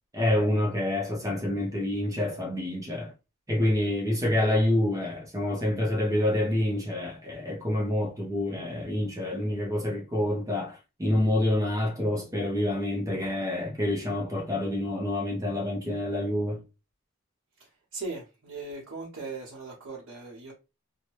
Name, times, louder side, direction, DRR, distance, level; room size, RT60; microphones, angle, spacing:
voice 1, 0.1-3.1 3.5-16.6, left 1 dB, 15° right, 0.6 m, -27 dB
voice 2, 17.9-20.5, right 3 dB, 80° right, 0.9 m, -38 dB
2.7 x 2.2 x 3.1 m
head